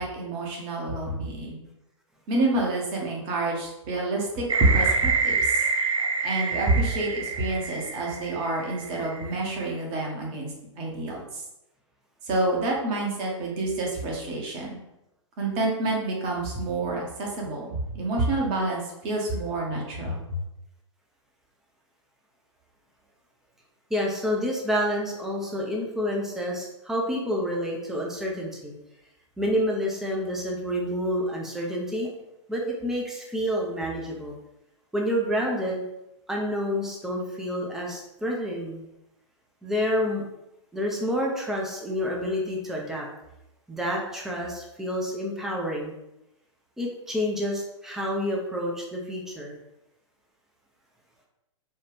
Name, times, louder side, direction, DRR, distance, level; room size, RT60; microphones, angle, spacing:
voice 1, 0.0-1.6 2.3-5.6 6.2-10.5 10.8-11.4 12.3-14.8 15.4-20.4, right 2 dB, 30° right, -1 dB, 1.1 m, -28 dB
sound 1, 4.5-9.3, right 4 dB, 85° right, 0.5 m, -27 dB
voice 2, 23.9-28.8 29.4-32.1 32.5-34.4 34.9-35.8 36.3-38.9 39.6-40.2 40.7-43.1 43.7-45.9 46.8-49.5, equal, ahead, -2 dB, 0.6 m, -28 dB
4.3 x 2.4 x 3.5 m, 0.89 s
figure-of-eight pair, 110°, 16 cm